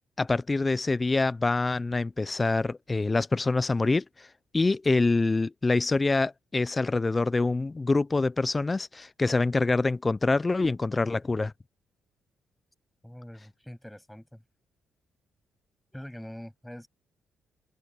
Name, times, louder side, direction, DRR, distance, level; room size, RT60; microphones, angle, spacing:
voice 1, 0.2-4.3 4.5-11.5, left 3 dB, 25° left, 0.5 m, -25 dB
voice 2, 13.0-14.4 15.9-16.9, equal, 5° left, 7.5 m, -44 dB
cardioid pair, 90°, 0 cm